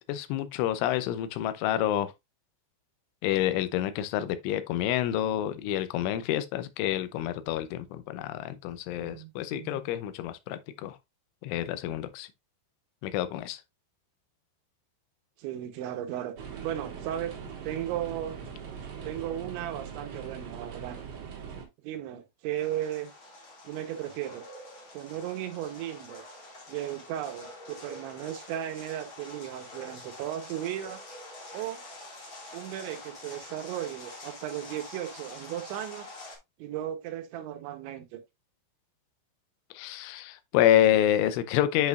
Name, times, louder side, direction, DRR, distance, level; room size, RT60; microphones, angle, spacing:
voice 1, 0.1-2.1 3.2-11.0 11.4-12.3 13.0-13.6 39.7-41.9, left 12 dB, 80° left, 3.2 m, -28 dB
voice 2, 9.0-9.8 15.4-16.3 16.6-17.4 17.6-18.4 19.0-21.0 21.8-23.1 23.6-24.4 24.9-26.2 26.7-31.0 31.5-31.8 32.5-36.1 36.6-38.2, right 11 dB, 80° right, 3.1 m, -35 dB
sound 1, 16.4-21.7, right 6 dB, 55° right, 3.0 m, -41 dB
sound 2, 22.6-36.4, left 2 dB, 45° left, 1.7 m, -46 dB
9.2 x 5.3 x 2.4 m
omnidirectional pair, 5.6 m